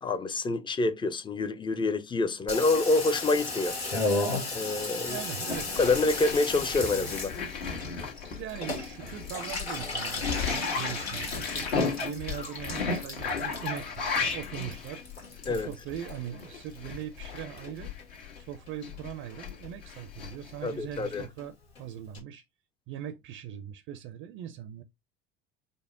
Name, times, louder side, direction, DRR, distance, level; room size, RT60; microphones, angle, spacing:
voice 1, 0.0-3.8 4.5-5.2 5.8-7.3 15.5-15.7 20.6-21.2, left 3 dB, 15° left, 0.5 m, -27 dB
Water tap faucet / Bathtub (filling or washing), 2.5-17.0 17.3-18.0 18.4-18.5 18.7-18.8 19.0-19.4 19.6-19.7 20.0-20.1 20.3-20.4 20.7-20.8 21.0-21.1 21.4-21.5 21.7-21.8 22.1-22.2, left 3 dB, 85° left, 1.4 m, -35 dB
voice 2, 5.1-5.8 8.3-15.0 15.5-17.9 18.4-22.4 22.9-24.8, right 10 dB, 45° right, 0.5 m, -40 dB
sound 1, 5.5-18.4 18.8-21.3, left 5 dB, 65° left, 1.6 m, -35 dB
5.2 x 2.1 x 3.6 m
figure-of-eight pair, 70°, 31 cm